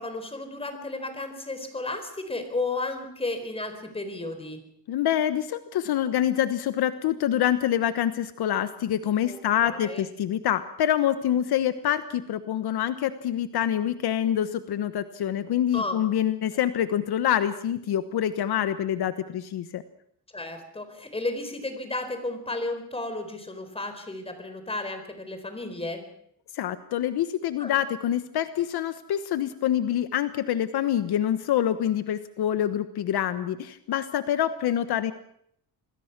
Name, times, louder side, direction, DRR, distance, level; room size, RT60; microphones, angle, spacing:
voice 1, 0.0-4.6 9.3-10.1 15.7-16.0 20.3-26.0 27.6-27.8, left 2 dB, 15° left, 7 dB, 4.3 m, -33 dB
voice 2, 4.9-19.8 26.5-35.1, left 10 dB, 70° left, 11 dB, 1.2 m, -26 dB
27.0 x 20.5 x 6.0 m, 0.70 s
cardioid pair, 145°, 40 cm